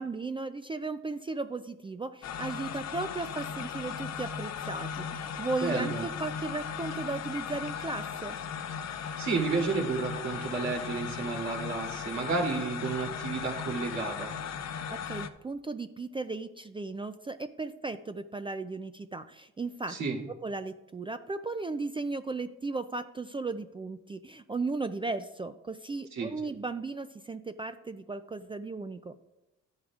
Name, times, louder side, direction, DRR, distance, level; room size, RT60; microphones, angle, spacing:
voice 1, 0.0-8.4 14.9-20.0 20.4-29.1, right 3 dB, 15° right, 10 dB, 0.4 m, -36 dB
sound 1, 2.2-15.3, left 7 dB, 60° left, 0.7 m, -37 dB
voice 2, 5.6-6.1 9.2-14.3 19.9-20.2 26.1-26.3, right 4 dB, 70° right, -2 dB, 2.6 m, -31 dB
12.0 x 9.5 x 2.4 m, 0.96 s
cardioid pair, 90°, 30 cm